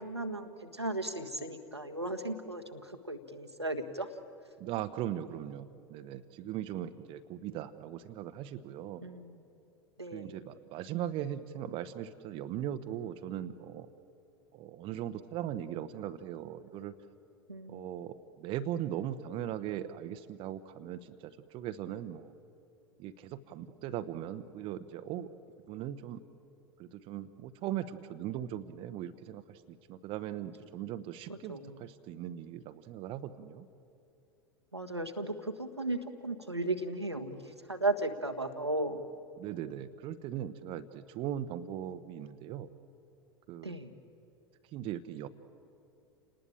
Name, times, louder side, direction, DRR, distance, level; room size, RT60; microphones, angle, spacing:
voice 1, 0.0-4.1 9.0-9.4 10.0-10.3 17.5-17.9 31.3-31.8 34.7-39.0 43.6-43.9, right 2 dB, 90° right, 5 dB, 1.5 m, -36 dB
voice 2, 4.6-9.0 10.1-13.9 14.5-16.9 17.7-22.3 23.0-25.3 25.7-26.2 26.8-33.7 39.4-42.7 43.5-43.7 44.7-45.3, right 11 dB, 40° right, 10 dB, 1.0 m, -39 dB
30.0 x 19.5 x 8.8 m, 2.7 s
figure-of-eight pair, 80°, 14 cm